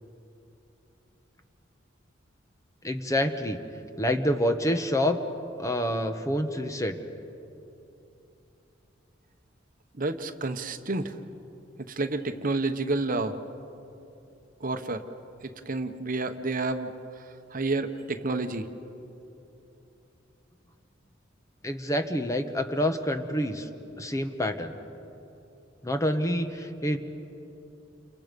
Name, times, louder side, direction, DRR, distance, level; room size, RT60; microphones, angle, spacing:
voice 1, 2.8-3.6 4.0-5.2 5.6-6.9 21.6-23.7 24.0-24.7 25.8-27.0, left 1 dB, 15° left, 7 dB, 1.1 m, -27 dB
voice 2, 10.0-11.1 11.9-13.4 14.6-15.0 15.7-16.9 17.5-18.7, right 3 dB, 45° right, 8 dB, 1.0 m, -29 dB
29.5 x 28.0 x 5.3 m, 2.9 s
head